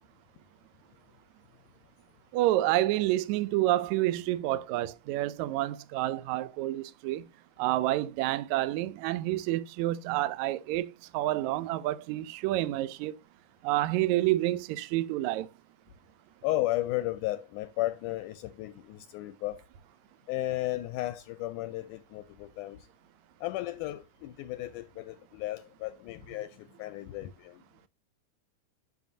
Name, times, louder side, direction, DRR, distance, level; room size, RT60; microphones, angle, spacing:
voice 1, 2.3-7.2 7.6-13.1 13.6-15.5, right 15 dB, 80° right, 1.7 m, -29 dB
voice 2, 16.4-19.6 20.3-22.9 23.4-27.6, left 16 dB, 80° left, 1.9 m, -34 dB
10.5 x 6.3 x 2.7 m
omnidirectional pair, 4.0 m